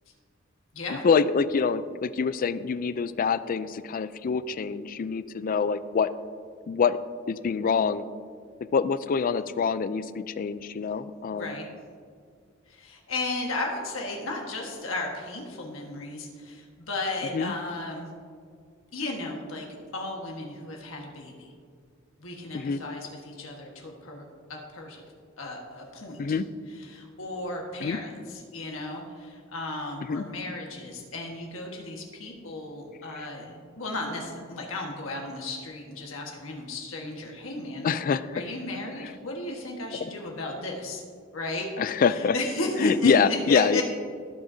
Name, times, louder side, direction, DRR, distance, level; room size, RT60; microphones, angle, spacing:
voice 1, 1.0-6.1 6.7-7.0 7.3-8.0 8.7-11.5 17.3-17.5 22.5-22.8 26.2-26.5 27.8-28.0 30.1-30.2 33.2-33.3 37.8-38.4 39.0-39.1 41.8-42.4 42.8-43.8, left 5 dB, 45° left, 14 dB, 0.3 m, -25 dB
voice 2, 11.3-11.6 12.7-18.1 18.9-19.7 19.9-21.5 22.2-24.2 24.5-25.0 25.4-26.4 26.8-38.0 38.3-41.0 41.3-41.7 42.0-43.8, left 2 dB, 80° left, 0 dB, 1.4 m, -34 dB
16.0 x 6.4 x 2.7 m, 2.1 s
head